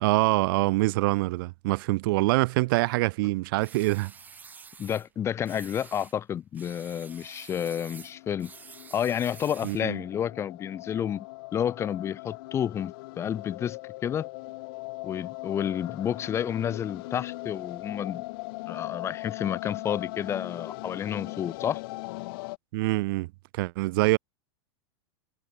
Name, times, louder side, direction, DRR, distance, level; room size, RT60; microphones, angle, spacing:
voice 1, 0.0-4.1 9.6-10.0 22.7-23.3 23.5-24.2, right 22 dB, 50° right, 0.5 m, -25 dB
sound 1, 3.6-5.1 5.4-6.2 6.5-9.9, right 5 dB, 10° right, 1.1 m, -49 dB
voice 2, 4.8-8.5 8.9-11.3 11.5-14.3 15.0-18.2 18.7-21.8, left 9 dB, 20° left, 0.7 m, -30 dB
sound 2, 7.1-22.6, left 23 dB, 55° left, 3.4 m, -40 dB
supercardioid pair, 155°, 15 cm